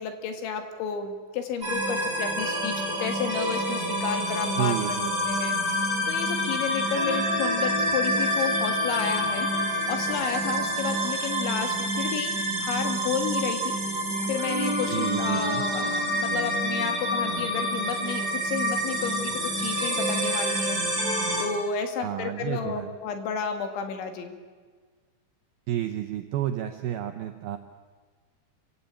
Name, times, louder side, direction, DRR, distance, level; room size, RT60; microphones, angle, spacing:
voice 1, 0.0-5.0 5.3-9.5 9.9-12.3 12.6-13.8 14.3-24.4, left 7 dB, 75° left, 6 dB, 4.1 m, -32 dB
sound 1, 1.6-21.5, equal, 20° right, 4.5 m, -27 dB
voice 2, 4.6-5.4 14.9-15.6 22.0-23.0 25.7-27.6, right 12 dB, 90° right, 7 dB, 2.1 m, -31 dB
26.5 x 16.5 x 8.8 m, 1.5 s
omnidirectional pair, 5.4 m